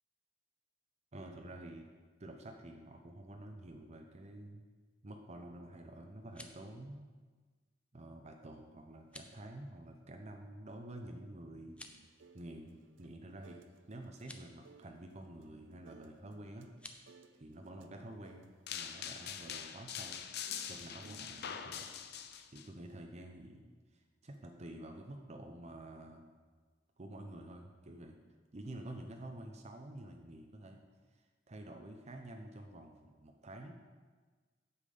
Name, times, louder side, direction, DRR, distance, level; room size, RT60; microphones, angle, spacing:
voice 1, 1.1-1.9 2.2-4.7 5.0-7.1 7.9-11.8 12.3-13.6 13.9-20.2 20.7-22.3 22.5-26.3 27.0-28.2 28.5-30.8 31.1-33.8, right 1 dB, 40° right, 3 dB, 0.8 m, -49 dB
sound 1, 6.1-6.7 9.0-9.4 11.6-12.1 14.1-14.5 16.7-17.0, left 1 dB, 5° left, 0.6 m, -53 dB
sound 2, 11.8-21.7, right 4 dB, 85° right, 0.5 m, -62 dB
sound 3, 18.7-22.7, left 8 dB, 60° left, 0.6 m, -43 dB
8.5 x 7.2 x 5.4 m, 1.4 s
head